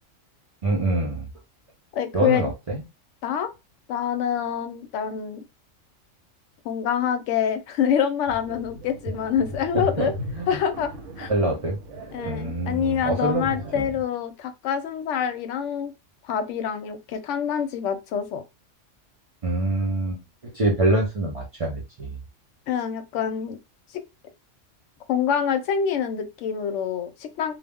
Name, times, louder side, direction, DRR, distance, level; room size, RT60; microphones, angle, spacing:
voice 1, 0.6-1.3 2.1-2.8 9.7-10.5 11.3-11.8 12.2-13.4 13.7-13.9 19.4-20.2 20.5-22.2, right 2 dB, 40° right, 0.5 m, -25 dB
voice 2, 1.9-2.5 3.2-3.5 3.9-5.4 6.6-10.1 10.5-10.9 11.2-11.3 12.1-15.9 16.3-18.4 22.7-23.6 25.1-27.6, left 8 dB, 75° left, 0.9 m, -26 dB
sound 1, 8.3-13.9, equal, 80° right, 1.0 m, -38 dB
2.3 x 2.0 x 3.4 m
omnidirectional pair, 1.3 m